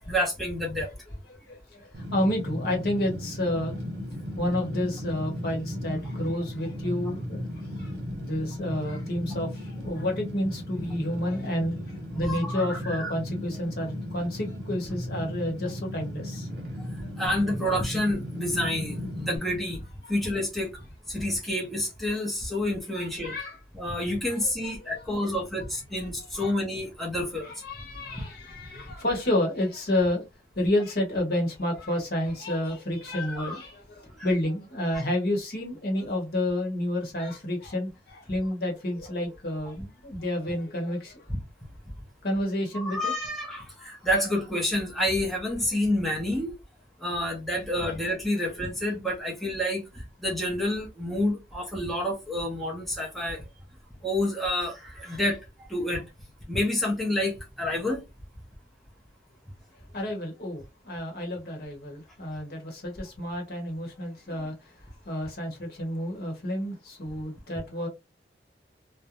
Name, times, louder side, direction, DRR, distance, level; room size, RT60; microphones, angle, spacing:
voice 1, 0.1-0.9 12.3-13.1 17.2-19.8 20.1-20.8 21.1-23.4 23.7-27.5 28.1-28.2 28.7-28.8 33.1-33.6 41.3-41.4 42.7-46.6 47.0-53.4 54.0-55.4 55.7-56.0 56.5-58.0, left 1 dB, ahead, 0.7 m, -29 dB
voice 2, 1.3-3.8 4.3-7.9 8.2-16.5 17.0-17.1 20.0-20.1 22.9-23.6 24.3-24.7 26.0-26.1 26.3-26.5 27.4-30.2 30.6-41.2 42.2-43.1 59.9-64.7 65.1-67.9, left 1 dB, 60° left, 1.0 m, -30 dB
Fire, 1.9-19.4, equal, 60° right, 1.0 m, -35 dB
2.5 x 2.1 x 2.9 m
head